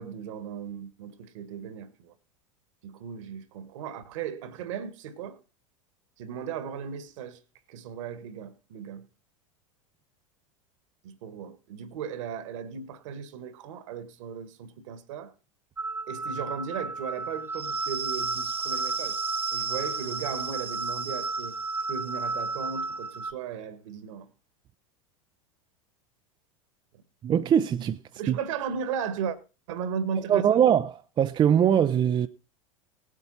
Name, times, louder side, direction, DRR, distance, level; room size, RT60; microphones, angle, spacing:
voice 1, 0.0-2.1 2.8-5.4 6.2-7.4 7.7-9.1 11.0-15.3 16.1-19.2 19.5-21.6 21.9-24.3 28.1-29.4 29.7-30.6, right 7 dB, 65° right, 1.7 m, -36 dB
sound 1, 15.8-23.3, right 4 dB, 10° right, 1.2 m, -32 dB
voice 2, 27.2-28.0 28.3-28.4 30.3-32.3, right 9 dB, 25° right, 0.6 m, -22 dB
18.5 x 8.4 x 4.1 m
figure-of-eight pair, 85°, 17 cm